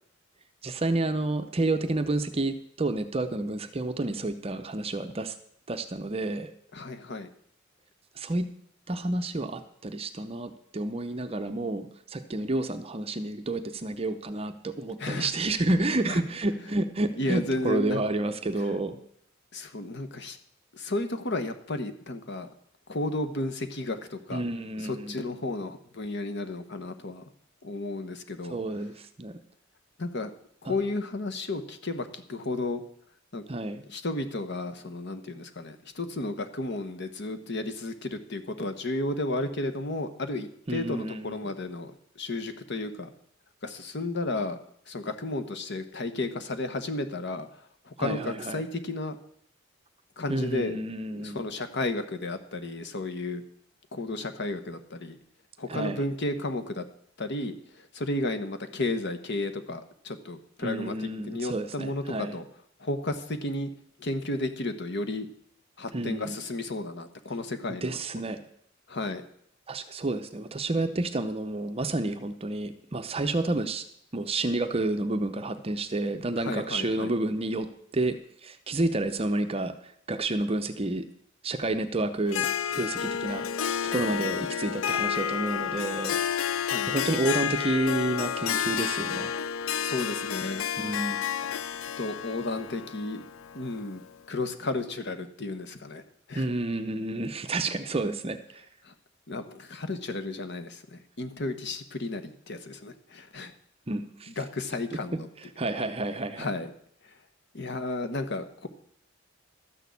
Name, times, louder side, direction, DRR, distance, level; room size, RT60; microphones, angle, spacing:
voice 1, 0.6-5.3 5.7-6.5 8.2-8.5 8.9-19.0 24.3-25.2 28.5-29.4 30.7-30.8 33.5-33.8 40.7-41.4 48.0-48.6 50.3-51.4 55.7-56.0 60.6-62.3 65.9-66.4 67.8-68.4 69.7-73.8 74.1-79.7 80.1-81.1 81.4-82.5 82.7-89.3 90.8-91.2 96.4-98.6 103.9-104.3 105.1-105.2 105.6-106.5, right 2 dB, 30° right, 8 dB, 0.7 m, -30 dB
voice 2, 6.7-7.3 15.0-15.3 16.1-16.2 17.2-18.0 18.6-18.7 19.5-20.4 20.7-22.5 22.9-24.4 24.8-27.2 27.6-28.6 30.0-30.3 30.6-32.8 33.3-33.4 33.9-43.1 43.6-44.6 44.9-49.2 50.2-50.7 51.1-53.4 53.9-55.2 55.6-56.8 57.2-62.4 62.8-63.7 64.0-65.3 65.8-68.0 68.9-69.2 76.4-77.1 86.7-86.9 89.8-91.0 91.4-91.5 92.0-93.2 93.5-94.0 94.3-96.0 96.3-96.5 98.8-98.9 99.3-103.5 104.4-105.3 106.4-106.7 107.0-107.1 107.5-108.7, left 2 dB, 60° left, 9 dB, 1.2 m, -33 dB
Harp, 82.3-94.1, left 9 dB, 90° left, 0.4 m, -30 dB
13.0 x 6.4 x 8.3 m, 0.68 s
head